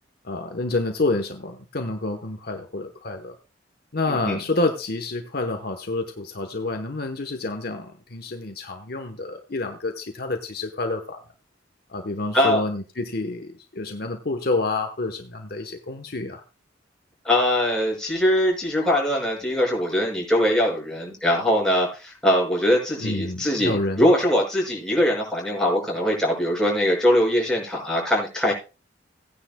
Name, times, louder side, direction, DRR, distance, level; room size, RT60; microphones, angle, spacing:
voice 1, 0.2-3.4 3.9-11.2 11.9-16.4 23.0-24.1, left 2 dB, 50° left, 5 dB, 1.0 m, -28 dB
voice 2, 4.1-4.4 12.3-12.6 17.2-28.5, equal, 5° left, -3 dB, 5.9 m, -22 dB
17.0 x 9.8 x 2.2 m, 0.32 s
head